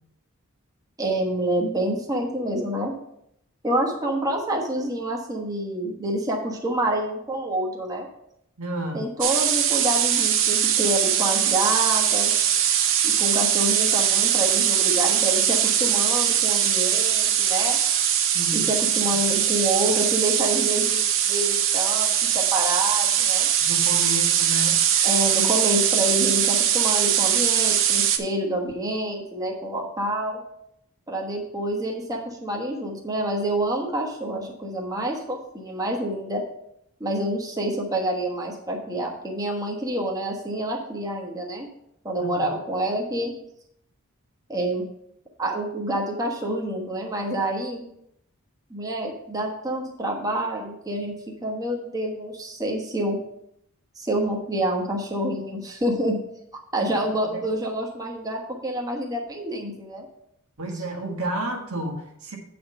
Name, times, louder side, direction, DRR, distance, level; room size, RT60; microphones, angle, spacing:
voice 1, 1.0-2.9 3.6-8.1 8.9-12.3 13.0-17.8 18.5-21.0 21.3-23.5 25.0-30.4 31.1-36.4 37.0-41.7 42.0-43.3 44.5-44.8 45.4-47.8 48.7-51.2 51.4-53.2 54.0-56.2 56.7-60.1 60.7-60.8, right 1 dB, 15° right, -1 dB, 1.2 m, -27 dB
voice 2, 8.6-9.1 18.3-18.7 23.6-24.8 42.2-42.5 56.8-56.9 57.3-57.4 60.6-62.4, right 1 dB, 80° right, 2 dB, 1.5 m, -31 dB
sound 1, 9.2-28.2, right 9 dB, 65° right, 0.7 m, -21 dB
8.5 x 4.3 x 5.4 m, 0.75 s
head